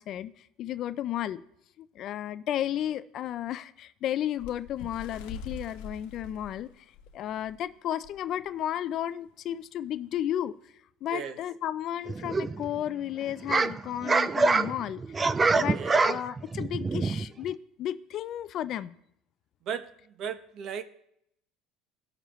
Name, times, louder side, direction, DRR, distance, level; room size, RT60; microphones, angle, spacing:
voice 1, 0.0-1.4 1.8-6.9 7.1-10.5 11.0-18.9, left 11 dB, 45° left, 14 dB, 0.4 m, -33 dB
Bird, 4.4-7.6 8.0-8.2 8.5-8.7 9.5-9.6, left 4 dB, 90° left, 1.0 m, -43 dB
sound 1, 12.1-12.8 13.2-17.5, right 3 dB, 20° right, 0.3 m, -26 dB
voice 2, 15.7-16.1 19.6-19.8 20.2-20.8, right 7 dB, 50° right, 10 dB, 0.9 m, -35 dB
18.0 x 6.6 x 3.1 m, 0.75 s
cardioid pair, 140°, 0 cm